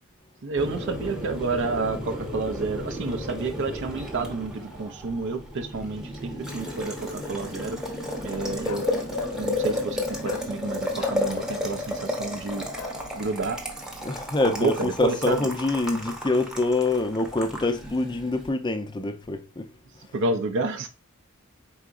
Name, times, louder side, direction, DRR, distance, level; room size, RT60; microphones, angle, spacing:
voice 1, 0.4-7.8 8.2-8.9 9.4-12.6 13.1-13.6 14.4-15.5 20.1-20.9, right 3 dB, 55° right, 0.5 m, -30 dB
Boiling, 0.6-18.5, left 1 dB, 5° right, 0.8 m, -33 dB
Bark, 8.6-9.5 10.2-10.5 11.0-11.7 12.7-13.0, left 6 dB, 75° left, 0.5 m, -36 dB
voice 2, 14.0-19.7, left 2 dB, 20° left, 0.4 m, -25 dB
4.8 x 3.8 x 2.4 m
head